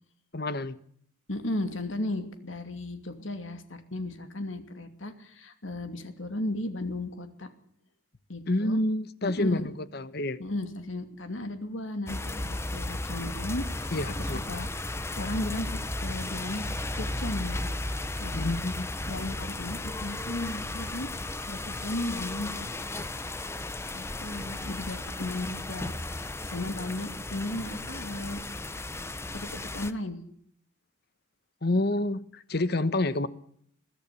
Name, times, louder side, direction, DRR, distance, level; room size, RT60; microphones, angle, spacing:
voice 1, 0.3-0.7 8.5-10.4 13.9-14.4 18.3-18.9 31.6-33.3, left 2 dB, 50° left, 1.2 m, -28 dB
voice 2, 1.3-7.5 8.3-8.8 9.2-9.7 10.4-14.7 15.2-16.7 16.9-17.7 18.2-18.5 19.1-21.1 21.5-22.7 23.0-23.1 23.9-25.9 26.4-28.4 28.9-29.0 29.3-30.2, left 1 dB, 75° left, 2.7 m, -35 dB
sound 1, 12.1-29.9, left 2 dB, 15° left, 0.8 m, -35 dB
22.5 x 14.0 x 8.4 m
head